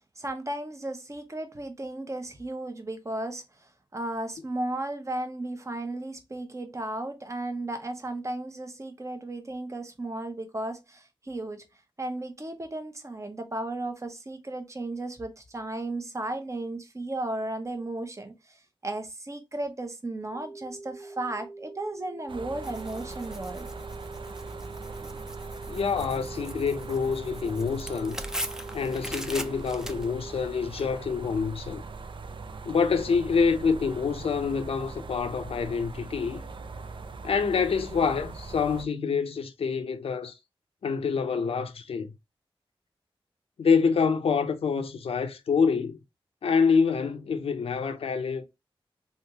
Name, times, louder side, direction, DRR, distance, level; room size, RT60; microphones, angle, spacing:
voice 1, 0.2-11.7 12.0-23.7, right 2 dB, 30° right, 0.8 m, -35 dB
sound 1, 20.3-30.3, right 2 dB, 80° right, 1.3 m, -44 dB
sound 2, 22.3-38.8, right 4 dB, 60° right, 0.4 m, -41 dB
Tearing, 22.6-30.8, equal, 5° right, 0.5 m, -41 dB
voice 2, 25.7-28.2 28.7-31.8 32.6-36.4 37.2-40.3 40.8-42.1 43.6-46.0 46.4-48.4, left 5 dB, 80° left, 0.6 m, -26 dB
3.4 x 2.4 x 2.8 m
cardioid pair, 55°, 10 cm